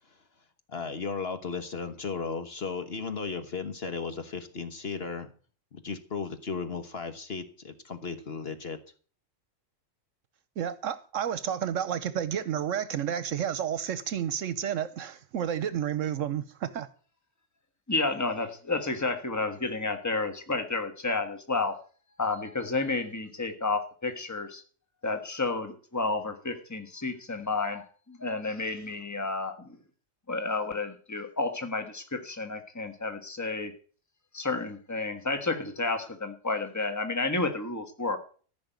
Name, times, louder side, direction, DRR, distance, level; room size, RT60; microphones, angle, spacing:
voice 1, 0.7-5.3 5.7-8.8, left 5 dB, 50° left, 1.4 m, -35 dB
voice 2, 10.6-16.9, right 9 dB, 75° right, 1.1 m, -31 dB
voice 3, 17.9-21.8 22.2-24.6 25.0-29.8 30.3-33.7 34.3-38.2, left 3 dB, 15° left, 1.6 m, -31 dB
14.5 x 6.0 x 9.2 m
omnidirectional pair, 1.3 m